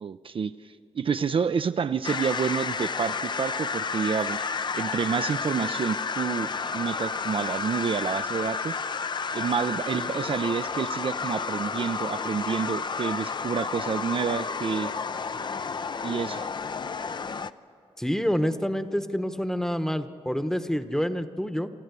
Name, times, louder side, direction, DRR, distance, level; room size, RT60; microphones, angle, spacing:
voice 1, 0.0-4.4 4.7-6.5 6.7-8.8 9.3-14.9 16.0-16.5, right 6 dB, 50° right, 10 dB, 0.5 m, -29 dB
sound 1, 2.0-17.5, left 5 dB, 45° left, 0.5 m, -31 dB
voice 2, 18.0-21.7, equal, 5° left, 10 dB, 1.0 m, -27 dB
27.5 x 12.5 x 8.2 m, 2.7 s
cardioid pair, 65°, 11 cm